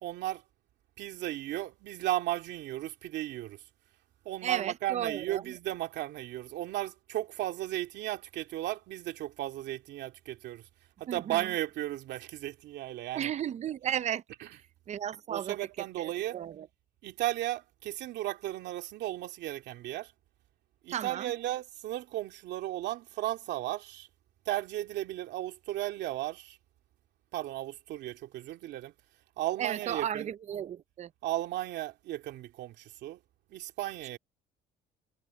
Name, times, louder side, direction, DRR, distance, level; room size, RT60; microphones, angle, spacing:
voice 1, 0.0-0.4 1.0-3.6 4.2-10.6 11.0-13.3 15.3-16.4 17.0-20.1 20.8-24.1 24.5-26.6 27.3-28.9 29.4-30.3 31.2-33.2 33.5-34.2, right 15 dB, 75° right, 2.6 m, -35 dB
voice 2, 4.4-5.6 11.1-11.5 13.1-14.6 14.9-15.6 16.0-16.7 20.9-21.3 29.6-31.1, right 10 dB, 40° right, 0.6 m, -35 dB
cardioid pair, 130°, 18 cm